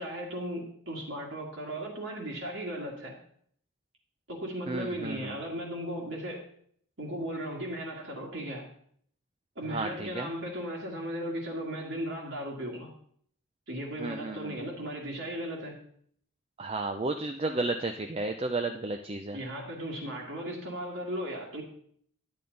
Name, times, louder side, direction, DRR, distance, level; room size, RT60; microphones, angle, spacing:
voice 1, 0.0-3.2 4.3-6.4 7.0-8.7 9.6-12.9 13.7-15.8 19.3-21.6, equal, 60° right, -2 dB, 1.9 m, -36 dB
voice 2, 4.7-5.3 9.7-10.3 14.0-14.6 16.6-19.4, right 2 dB, 30° right, 5 dB, 0.5 m, -33 dB
10.5 x 8.6 x 3.9 m, 0.63 s
head